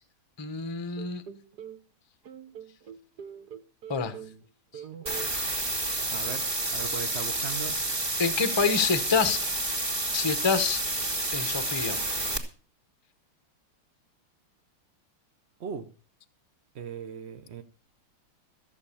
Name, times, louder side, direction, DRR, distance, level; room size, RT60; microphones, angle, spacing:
voice 1, 0.4-1.2 3.9-4.1 5.7-5.8 8.2-9.4 10.1-10.8 11.3-12.0, left 5 dB, 25° left, 0.6 m, -27 dB
sound 1, 1.0-1.8 2.2-4.5 4.7-5.3, right 8 dB, 55° right, 1.5 m, -43 dB
sound 2, 5.1-12.4, right 2 dB, 10° right, 2.4 m, -30 dB
voice 2, 6.1-7.8 15.6-15.9 16.7-17.6, right 7 dB, 70° right, 0.6 m, -38 dB
14.5 x 7.7 x 6.9 m
omnidirectional pair, 2.3 m